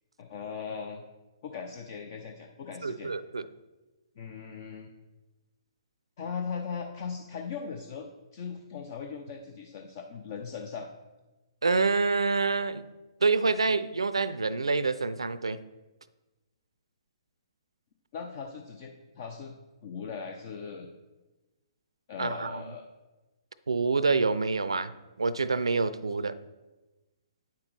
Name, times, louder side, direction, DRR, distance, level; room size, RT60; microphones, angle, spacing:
voice 1, 0.2-1.0 1.4-3.1 4.2-4.9 6.2-10.9 18.1-19.5 19.8-20.9 22.1-22.8, left 6 dB, 45° left, 3 dB, 0.7 m, -39 dB
voice 2, 2.8-3.4 11.6-12.8 13.2-15.6 22.2-22.6 23.7-24.9 25.2-26.4, right 4 dB, 75° right, 15 dB, 0.5 m, -27 dB
8.6 x 6.0 x 4.6 m, 1.1 s
figure-of-eight pair, 125°, 3 cm